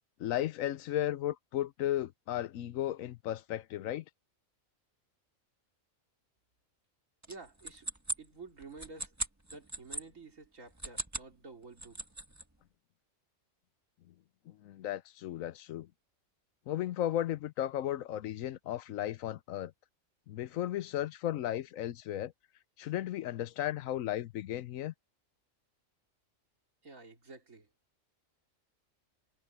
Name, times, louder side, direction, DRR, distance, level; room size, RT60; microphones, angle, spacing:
voice 1, 0.2-4.0 14.5-15.9 16.7-19.7 20.3-22.3 22.8-24.9, left 12 dB, 85° left, 1.1 m, -35 dB
sound 1, 7.2-10.0 10.7-11.3 11.6-12.4, right 2 dB, 15° right, 1.3 m, -39 dB
voice 2, 7.3-7.9 8.2-9.1 9.5-12.0 26.8-27.7, right 3 dB, 80° right, 3.7 m, -50 dB
omnidirectional pair, 1.4 m